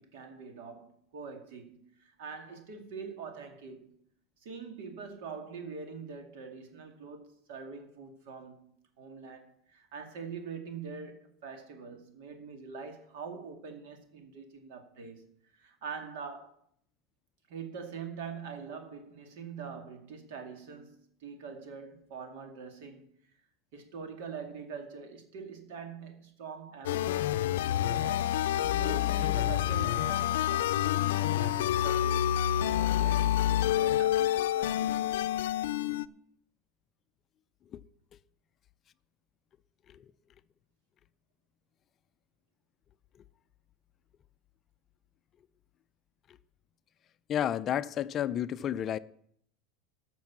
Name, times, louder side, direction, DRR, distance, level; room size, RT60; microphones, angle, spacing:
voice 1, 0.0-3.9 4.4-15.3 15.5-16.6 17.5-23.1 23.7-27.4 27.8-35.1, right 5 dB, 70° right, 2.3 m, -44 dB
sound 1, 26.8-36.1, left 12 dB, 90° left, 0.5 m, -28 dB
voice 2, 47.3-49.0, left 10 dB, 30° left, 0.4 m, -31 dB
13.0 x 6.0 x 7.4 m
supercardioid pair, 145°, 0 cm